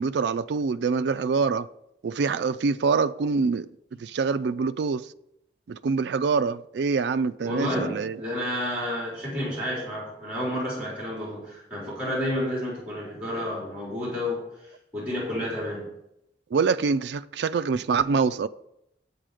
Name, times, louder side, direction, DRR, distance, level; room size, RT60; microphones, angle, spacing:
voice 1, 0.0-1.7 2.0-3.7 4.0-5.1 5.7-8.2 16.5-18.5, right 5 dB, 85° right, 0.4 m, -25 dB
voice 2, 7.4-14.7 14.9-15.9, left 1 dB, 5° right, 4.0 m, -30 dB
8.9 x 8.4 x 5.0 m
head